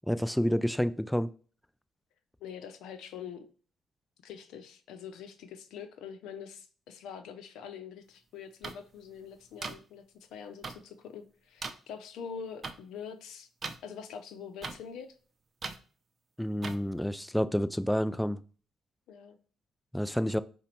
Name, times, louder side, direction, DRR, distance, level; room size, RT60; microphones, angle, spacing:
voice 1, 0.1-1.3 16.4-18.4 19.9-20.4, equal, 5° left, 0.3 m, -29 dB
voice 2, 2.4-3.5 4.2-13.5 13.8-15.1 19.1-19.4, left 7 dB, 85° left, 0.6 m, -44 dB
sound 1, 8.6-8.7 9.6-9.7 10.6-10.7 11.6-11.7 12.6-12.7 13.6-13.8 14.6-14.8 15.6-15.8 16.6-16.8, right 4 dB, 40° right, 0.6 m, -37 dB
5.0 x 2.3 x 4.3 m
cardioid pair, 90°, 0 cm